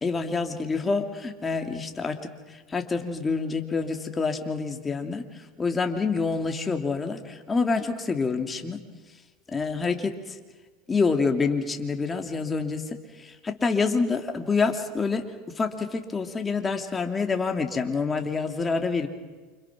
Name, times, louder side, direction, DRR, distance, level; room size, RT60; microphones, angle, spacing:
voice 1, 0.0-8.8 9.5-10.4 10.9-19.1, left 4 dB, 20° left, 5 dB, 2.9 m, -27 dB
28.5 x 26.5 x 6.2 m, 1.4 s
hypercardioid pair, 85°, 0 cm